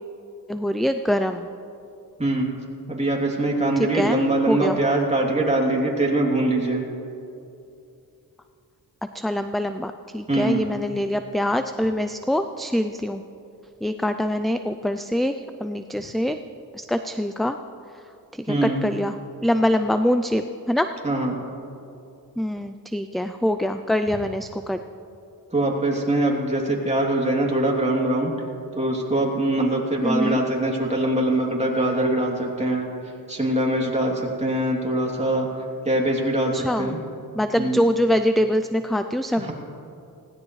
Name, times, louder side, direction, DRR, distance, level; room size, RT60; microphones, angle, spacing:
voice 1, 0.5-1.5 3.8-4.2 4.5-4.8 9.1-13.2 13.8-16.4 16.7-17.6 18.3-20.9 22.4-24.8 30.0-30.4 36.5-37.0 37.4-39.5, equal, ahead, 9 dB, 0.4 m, -24 dB
voice 2, 2.9-6.8 10.3-10.7 18.5-18.9 21.0-21.4 25.5-28.3 28.7-32.9 33.3-35.5 35.8-37.0 37.6-37.8 39.4-39.5, right 1 dB, 15° right, -2 dB, 3.0 m, -23 dB
20.0 x 16.5 x 3.2 m, 2.7 s
cardioid pair, 80°, 38 cm